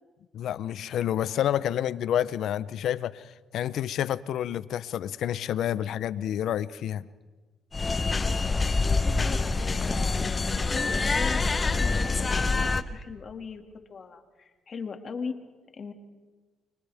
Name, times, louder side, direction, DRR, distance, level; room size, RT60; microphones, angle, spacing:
voice 1, 0.3-7.0, left 10 dB, 75° left, 17 dB, 0.6 m, -29 dB
sound 1, 7.7-12.8, left 3 dB, 30° left, 0.9 m, -26 dB
voice 2, 8.6-13.6 13.9-15.3 15.7-15.9, left 5 dB, 45° left, 5 dB, 2.2 m, -39 dB
30.0 x 25.0 x 3.5 m, 1.3 s
cardioid pair, 90°, 0 cm